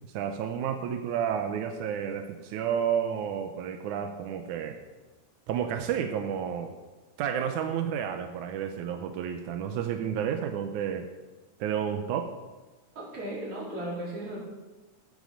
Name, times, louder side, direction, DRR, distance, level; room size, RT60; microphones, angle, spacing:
voice 1, 0.1-4.8 5.5-6.7 7.2-11.1 11.6-12.3, right 8 dB, 90° right, 6 dB, 2.3 m, -31 dB
voice 2, 13.0-14.4, right 1 dB, 50° right, -6 dB, 5.4 m, -36 dB
15.5 x 8.4 x 6.6 m, 1.2 s
omnidirectional pair, 3.4 m